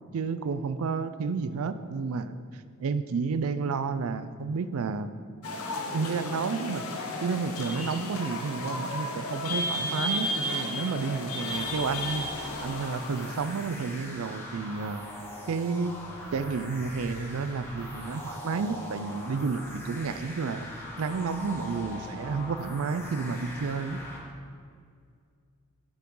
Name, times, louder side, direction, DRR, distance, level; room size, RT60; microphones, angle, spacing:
voice 1, 0.1-2.4 2.8-5.1 5.9-6.9 7.2-12.3 12.6-15.1 15.5-16.0 16.3-20.7 21.0-24.0, right 4 dB, 70° right, 12 dB, 0.4 m, -31 dB
sound 1, 5.4-14.0, left 1 dB, 80° left, 1.0 m, -34 dB
sound 2, 11.4-24.2, left 1 dB, 10° left, 1.3 m, -41 dB
8.4 x 7.7 x 3.8 m, 2.1 s
head